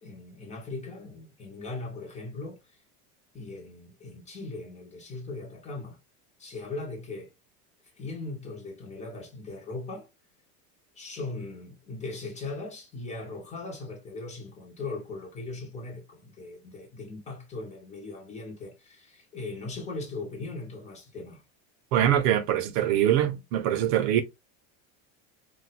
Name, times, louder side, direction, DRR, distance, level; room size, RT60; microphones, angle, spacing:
voice 1, 0.0-2.6 3.3-6.0 6.4-7.3 8.0-10.1 10.9-21.4, left 3 dB, 15° left, 0.9 m, -39 dB
voice 2, 21.9-24.2, right 11 dB, 75° right, 0.7 m, -23 dB
4.4 x 2.1 x 2.4 m
cardioid pair, 160°, 39 cm